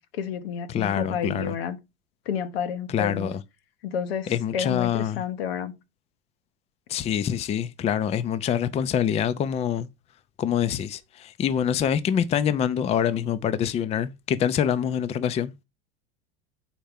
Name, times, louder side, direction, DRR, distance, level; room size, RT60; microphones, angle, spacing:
voice 1, 0.1-1.8 2.3-3.3 3.8-5.7, left 7 dB, 90° left, 1.0 m, -30 dB
voice 2, 0.7-1.5 2.9-3.4 4.3-5.2 6.9-9.9 10.4-15.5, left 9 dB, 20° left, 0.4 m, -25 dB
4.5 x 4.4 x 5.1 m
supercardioid pair, 120°, 29 cm